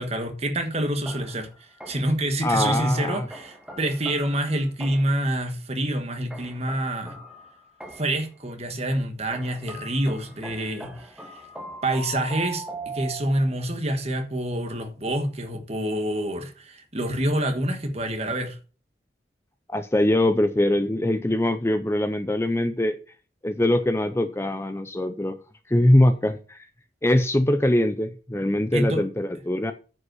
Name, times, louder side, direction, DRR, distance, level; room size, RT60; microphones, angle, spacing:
voice 1, 0.0-1.5 1.9-7.2 8.0-11.4 11.8-18.6 28.7-29.0, right 1 dB, 35° right, 1.5 m, -27 dB
sound 1, 1.1-2.3 3.3-5.3 6.3-8.3 9.3-13.6, right 1 dB, 5° right, 1.3 m, -40 dB
voice 2, 2.4-3.3 19.7-23.0 23.4-25.4 25.7-26.6 27.0-29.7, left 1 dB, 15° left, 0.5 m, -22 dB
9.5 x 5.4 x 6.2 m
head